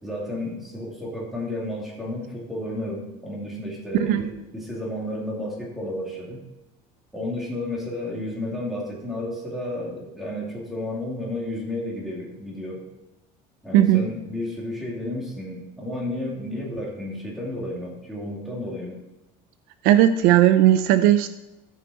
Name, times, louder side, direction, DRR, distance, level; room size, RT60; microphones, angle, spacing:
voice 1, 0.0-6.4 7.1-12.8 13.6-19.0, left 1 dB, ahead, -4 dB, 2.4 m, -32 dB
voice 2, 13.7-14.1 19.8-21.3, right 12 dB, 65° right, 11 dB, 0.5 m, -17 dB
14.0 x 5.5 x 4.2 m, 0.94 s
cardioid pair, 165°, 16 cm